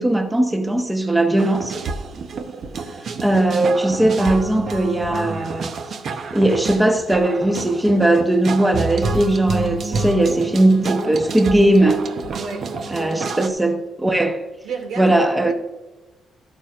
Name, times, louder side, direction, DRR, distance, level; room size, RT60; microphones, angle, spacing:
voice 1, 0.0-1.6 3.2-5.7 6.3-12.0 12.9-14.4 15.0-15.5, right 1 dB, 10° right, 1.0 m, -18 dB
sound 1, 1.4-13.5, right 4 dB, 55° right, 0.8 m, -29 dB
voice 2, 12.3-12.7 13.0-13.6 14.6-15.2 15.4-15.5, right 5 dB, 75° right, 1.7 m, -31 dB
12.5 x 8.9 x 2.5 m
cardioid pair, 90°, 0 cm